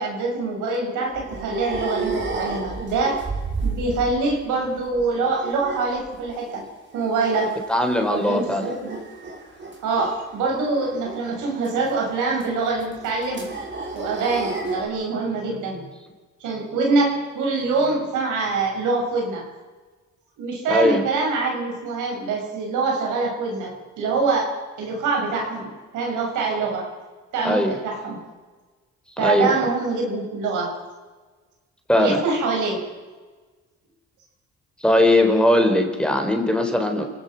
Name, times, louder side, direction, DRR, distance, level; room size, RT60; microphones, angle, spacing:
voice 1, 0.0-3.2 3.6-6.6 6.9-7.6 8.1-9.0 9.8-13.5 13.9-15.9 16.4-19.5 20.4-26.9 27.3-28.2 29.2-30.8 32.0-32.8, right 3 dB, 90° right, 0 dB, 6.4 m, -24 dB
sound 1, 0.7-4.4 4.6-6.7 6.9-7.6 7.9-14.9, right 3 dB, 40° right, 5.4 m, -33 dB
voice 2, 7.7-8.7 20.7-21.0 27.4-27.8 29.2-29.5 31.9-32.2 34.8-37.0, left 1 dB, 5° left, 4 dB, 4.0 m, -19 dB
28.0 x 18.0 x 5.9 m, 1.3 s
cardioid pair, 90°, 30 cm